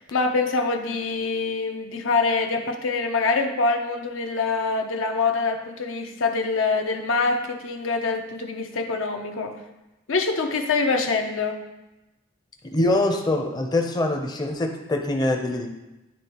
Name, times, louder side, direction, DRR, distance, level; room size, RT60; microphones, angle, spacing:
voice 1, 0.0-9.5 10.1-11.6, left 4 dB, 80° left, 5 dB, 0.6 m, -25 dB
voice 2, 12.6-15.7, left 2 dB, 20° left, 2 dB, 0.5 m, -24 dB
9.9 x 3.5 x 2.9 m, 0.99 s
head